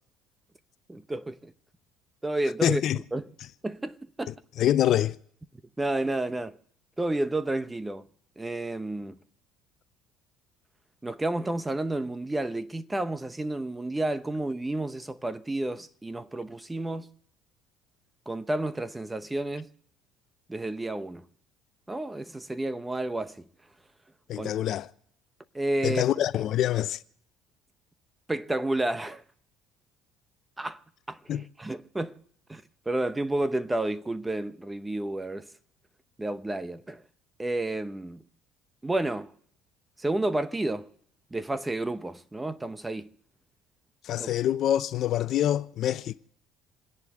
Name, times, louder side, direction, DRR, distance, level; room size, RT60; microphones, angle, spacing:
voice 1, 0.9-1.5 2.2-2.8 3.1-3.3 3.6-4.3 5.8-6.6 7.0-8.0 8.4-9.2 11.0-17.1 18.3-19.7 20.5-21.2 21.9-23.5 24.4-24.5 25.5-26.0 28.3-29.2 30.6-30.8 31.1-32.2 32.5-35.5 36.2-37.0 37.4-38.2 38.8-39.3 40.0-40.9 41.3-43.1 44.2-44.3, right 2 dB, 10° right, 0.8 m, -31 dB
voice 2, 2.6-3.0 4.3-5.2 24.3-24.9 25.8-27.0 31.3-31.4 44.0-46.1, left 11 dB, 55° left, 0.7 m, -25 dB
28.5 x 10.5 x 3.7 m
cardioid pair, 125°, 0 cm